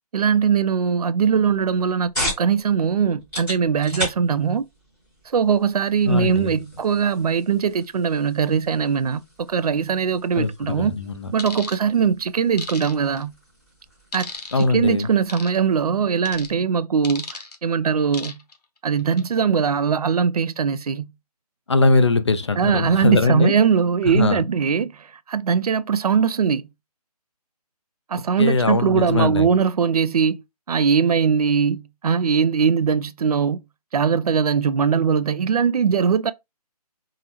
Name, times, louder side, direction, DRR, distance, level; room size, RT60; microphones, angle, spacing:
voice 1, 0.1-4.6 5.3-10.9 11.3-13.4 14.1-14.3 14.6-18.4 18.8-21.1 22.6-26.7 28.1-30.4 30.7-33.6 33.9-36.3, right 6 dB, 70° right, 0.4 m, -21 dB
sound 1, 1.5-16.6, left 1 dB, 5° left, 0.7 m, -37 dB
voice 2, 6.1-6.6 10.4-11.3 14.5-15.1 21.7-23.5 24.1-24.4 28.4-29.5, left 3 dB, 45° left, 0.4 m, -21 dB
sound 2, 11.4-11.8 12.6-13.2 14.1-14.7 15.3-15.6 16.3-16.5 17.0-17.6 18.1-18.5 19.0-19.2, left 4 dB, 90° left, 0.9 m, -34 dB
3.7 x 2.0 x 2.8 m
hypercardioid pair, 180°, 20 cm